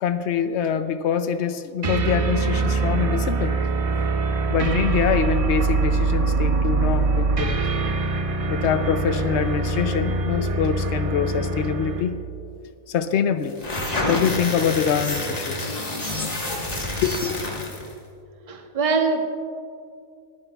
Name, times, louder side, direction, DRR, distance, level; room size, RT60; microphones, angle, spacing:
voice 1, 0.0-3.5 4.5-7.6 8.5-12.2 12.9-13.5 14.1-15.7 17.0-17.3, left 7 dB, 65° left, 11 dB, 0.7 m, -24 dB
sound 1, 1.8-12.2, right 3 dB, 55° right, 0.3 m, -23 dB
sound 2, 13.5-17.9, left 1 dB, 30° left, 1.4 m, -28 dB
voice 2, 18.5-19.2, right 4 dB, 30° right, 4 dB, 0.8 m, -22 dB
22.0 x 9.6 x 2.3 m, 2.4 s
omnidirectional pair, 1.5 m